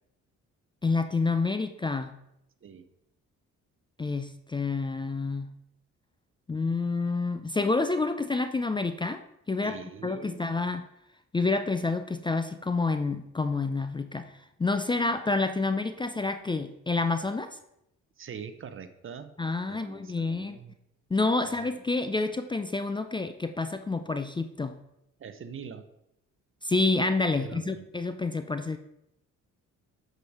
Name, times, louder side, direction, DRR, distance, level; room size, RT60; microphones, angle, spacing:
voice 1, 0.8-2.1 4.0-5.5 6.5-9.8 10.0-10.9 11.3-14.3 14.6-17.6 19.4-20.6 21.1-24.8 26.6-28.8, left 3 dB, 15° left, 9 dB, 0.4 m, -28 dB
voice 2, 9.6-10.5 18.2-19.3 19.7-20.7 21.4-21.6 25.2-25.9 27.4-27.9, right 7 dB, 45° right, 11 dB, 0.8 m, -43 dB
7.6 x 5.1 x 4.6 m, 0.81 s
cardioid pair, 90°, 30 cm